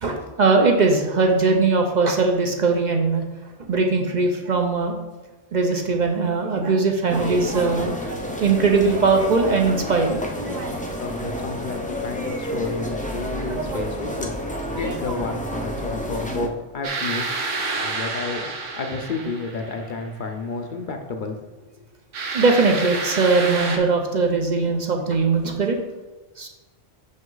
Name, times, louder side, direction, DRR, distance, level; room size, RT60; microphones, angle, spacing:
voice 1, 0.0-3.2 3.6-5.0 5.5-10.7 13.3-13.9 14.7-15.2 22.3-25.8 26.4-26.5, right 4 dB, 45° right, 3 dB, 0.7 m, -21 dB
sound 1, 7.1-16.5, equal, 15° left, 0.3 m, -30 dB
voice 2, 11.0-17.3 17.8-18.5 18.8-21.4 21.8-21.9, left 3 dB, 50° left, 5 dB, 0.7 m, -31 dB
sound 2, 16.8-20.1 22.1-23.8, right 3 dB, 75° right, 1.2 m, -29 dB
6.1 x 5.5 x 3.9 m, 1.2 s
omnidirectional pair, 1.3 m